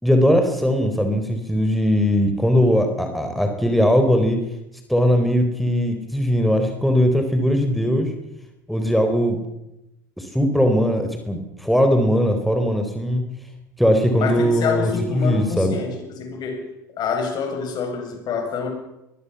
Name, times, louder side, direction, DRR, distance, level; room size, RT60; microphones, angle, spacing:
voice 1, 0.0-4.4 4.9-8.1 8.7-9.4 10.2-13.2 13.8-15.8, equal, ahead, 5 dB, 4.3 m, -19 dB
voice 2, 14.2-16.7 17.0-18.7, left 5 dB, 45° left, 5 dB, 7.8 m, -27 dB
23.0 x 20.0 x 7.2 m, 0.89 s
hypercardioid pair, 75°, 10 cm